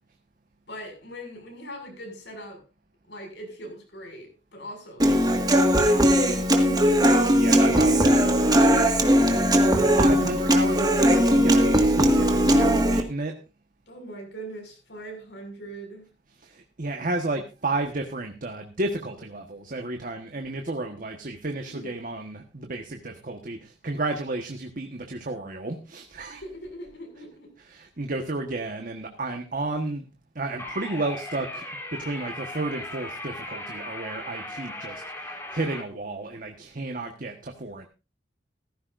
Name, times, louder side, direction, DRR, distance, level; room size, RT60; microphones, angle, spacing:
voice 1, 0.7-2.6 3.1-6.5 13.9-16.1 21.6-22.0 26.3-27.5, right 1 dB, 75° left, 6.2 m, -41 dB
Human voice / Acoustic guitar, 5.0-13.0, equal, 25° right, 1.8 m, -19 dB
voice 2, 7.1-9.6 10.0-13.3 16.4-26.4 27.6-30.1 30.3-31.6 31.9-37.9, right 2 dB, 50° right, 1.4 m, -32 dB
sound 1, 30.6-35.8, left 1 dB, 15° left, 3.3 m, -37 dB
16.5 x 14.5 x 2.6 m
head